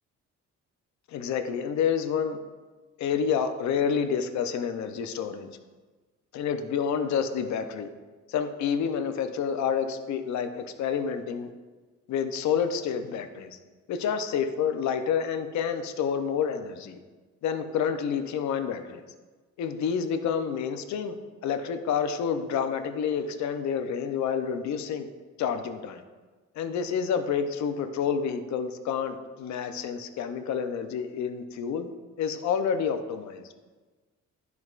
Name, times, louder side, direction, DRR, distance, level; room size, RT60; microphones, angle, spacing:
voice 1, 1.1-2.4 3.0-5.5 6.3-7.9 8.3-11.5 12.1-13.6 13.9-17.0 17.4-19.0 19.6-21.2 21.4-25.1 25.4-26.0 26.6-31.9 32.2-33.5, left 7 dB, 65° left, 7 dB, 0.6 m, -29 dB
10.5 x 4.7 x 2.4 m, 1.3 s
cardioid pair, 90°, 30 cm